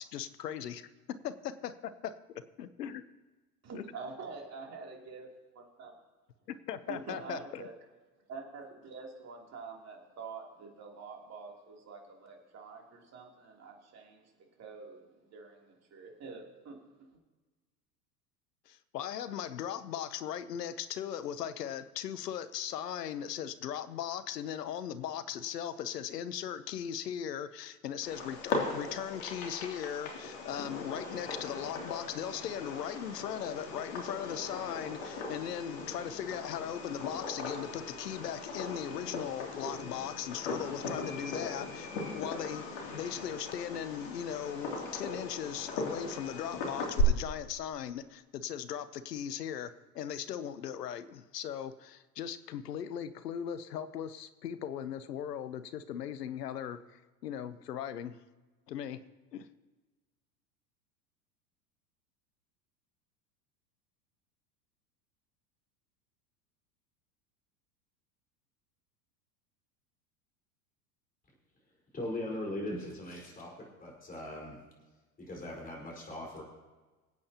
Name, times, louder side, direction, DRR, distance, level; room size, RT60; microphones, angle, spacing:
voice 1, 0.0-2.2 2.6-3.0 6.7-7.6 18.7-58.2 58.7-59.0 59.3-59.5, left 9 dB, 80° left, 14 dB, 0.9 m, -38 dB
voice 2, 3.6-5.3 5.5-5.9 6.9-7.8 8.3-14.3 14.6-17.1, right 4 dB, 35° right, 0 dB, 3.2 m, -46 dB
Fireworks, 28.0-47.0, left 4 dB, 55° left, 3.0 m, -39 dB
voice 3, 71.9-73.5 73.8-74.6 75.2-76.4, left 1 dB, 20° left, -2 dB, 4.6 m, -39 dB
25.5 x 8.7 x 2.9 m, 1.3 s
hypercardioid pair, 90°, 48 cm